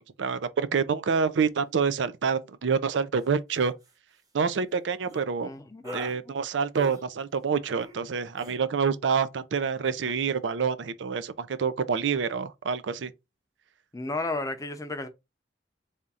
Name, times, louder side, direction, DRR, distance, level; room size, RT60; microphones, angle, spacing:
voice 1, 0.0-3.7 4.3-5.5 5.9-13.1, right 6 dB, 85° right, 0.5 m, -27 dB
sound 1, 3.1-3.3 3.6-3.9 5.1-5.2 5.8-6.2 6.7-7.0 7.8-8.0 8.3-8.6, right 1 dB, 20° right, 0.8 m, -41 dB
voice 2, 5.4-6.3 13.9-15.1, left 2 dB, 20° left, 0.5 m, -34 dB
3.5 x 2.5 x 4.0 m
head